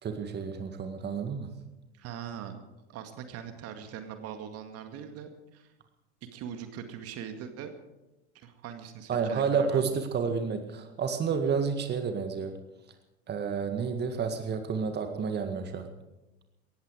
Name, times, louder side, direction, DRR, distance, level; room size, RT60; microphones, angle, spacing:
voice 1, 0.0-1.5 9.1-12.5 13.3-15.9, right 6 dB, 30° right, 6 dB, 1.9 m, -30 dB
voice 2, 1.9-2.5 2.9-5.7 6.3-7.7 8.3-9.8, right 8 dB, 45° right, 7 dB, 2.1 m, -41 dB
18.0 x 15.0 x 5.0 m, 1.0 s
figure-of-eight pair, 75°, 33 cm